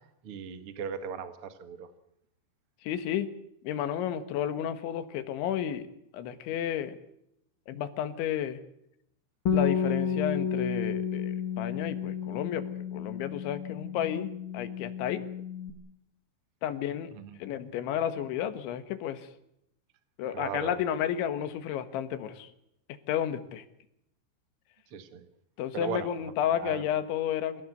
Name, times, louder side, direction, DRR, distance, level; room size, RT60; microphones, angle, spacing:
voice 1, 0.2-1.9 17.1-17.4 20.3-20.8 24.9-25.2 25.7-26.1 26.5-26.8, right 7 dB, 70° right, 9 dB, 1.3 m, -37 dB
voice 2, 2.8-3.3 3.7-5.8 6.1-7.0 7.7-8.6 9.5-15.2 16.6-17.1 17.4-19.2 20.2-22.5 23.1-23.6 25.6-27.6, left 10 dB, 80° left, 11 dB, 3.8 m, -32 dB
Bass guitar, 9.5-15.7, left 7 dB, 55° left, 1.4 m, -31 dB
27.0 x 16.5 x 7.9 m, 0.80 s
omnidirectional pair, 5.4 m